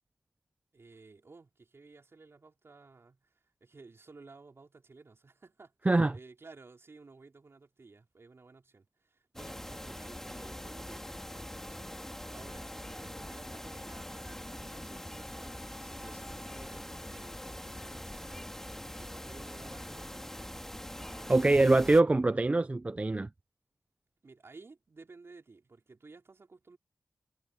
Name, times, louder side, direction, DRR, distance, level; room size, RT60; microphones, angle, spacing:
voice 1, 0.7-20.2 21.0-21.8 24.2-26.8, right 3 dB, 50° right, 4.5 m, -55 dB
sound 1, 9.4-22.0, left 1 dB, 5° left, 2.1 m, -43 dB
voice 2, 21.3-23.3, right 2 dB, 25° right, 0.4 m, -24 dB
wide cardioid pair, 85°, 6 cm